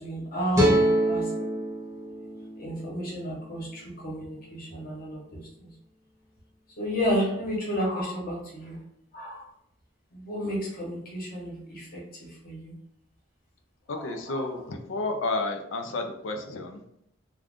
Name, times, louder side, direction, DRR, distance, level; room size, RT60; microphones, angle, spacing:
voice 1, 0.0-1.5 2.6-5.7 6.8-8.8 9.1-9.4 10.1-12.7 13.9-14.5, equal, 50° left, -4 dB, 1.0 m, -32 dB
sound 1, 0.5-3.7, right 1 dB, 15° right, 0.7 m, -26 dB
voice 2, 13.9-16.8, left 2 dB, 75° left, 5 dB, 0.5 m, -31 dB
2.5 x 2.3 x 3.4 m, 0.76 s
head